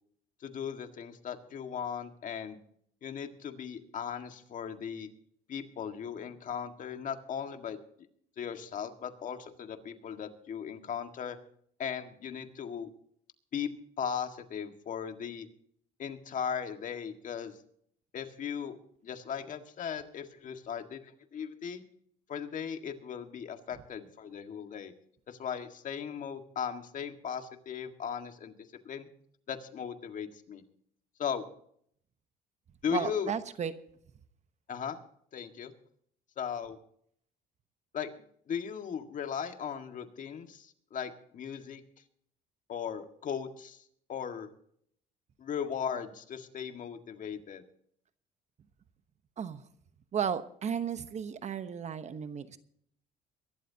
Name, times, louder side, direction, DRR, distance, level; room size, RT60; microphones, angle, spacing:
voice 1, 0.4-2.6 3.0-5.1 5.5-7.8 8.4-11.4 11.8-12.9 13.5-13.7 14.0-15.5 16.0-17.6 18.1-18.8 19.0-21.8 22.3-24.9 25.3-28.5 28.9-29.1 29.5-30.6 31.2-31.5 32.8-33.3 34.7-35.0 35.3-35.7 36.4-36.8 37.9-41.8 42.7-43.8 44.1-44.5 45.4-47.6, left 7 dB, 50° left, 6 dB, 1.8 m, -37 dB
voice 2, 32.9-33.7 49.4-49.6 50.1-52.6, right 7 dB, 45° right, 11 dB, 1.1 m, -34 dB
23.0 x 12.5 x 2.9 m, 0.64 s
cardioid pair, 110°, 17 cm